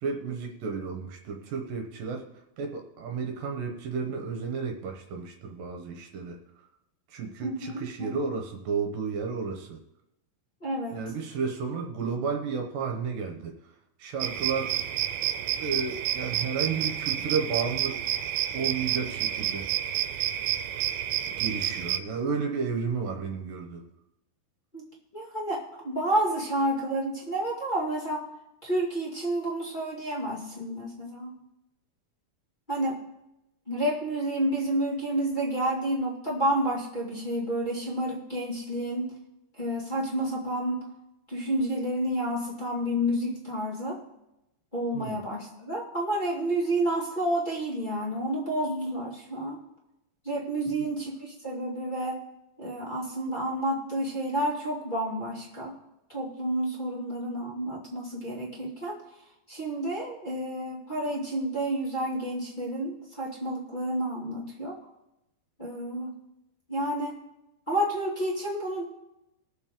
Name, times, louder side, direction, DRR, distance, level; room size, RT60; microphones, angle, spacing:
voice 1, 0.0-2.2 2.6-6.4 7.1-9.8 10.9-13.6 14.0-14.7 15.6-18.0 18.5-19.7 21.4-23.8 44.9-45.2 50.7-50.9, right 5 dB, 70° right, 3 dB, 2.5 m, -32 dB
voice 2, 7.4-8.3 10.6-11.0 24.7-24.9 25.1-28.2 28.6-31.3 32.7-33.0 33.7-39.1 39.5-40.9 41.3-44.0 44.7-49.6 50.2-52.2 52.6-55.7 56.1-59.0 59.5-64.8 65.6-66.2 66.7-67.2 67.7-68.9, right 1 dB, 20° left, -6 dB, 1.2 m, -30 dB
sound 1, 14.2-22.0, right 12 dB, 90° right, 2.6 m, -29 dB
21.0 x 7.1 x 3.7 m, 0.89 s
omnidirectional pair, 4.4 m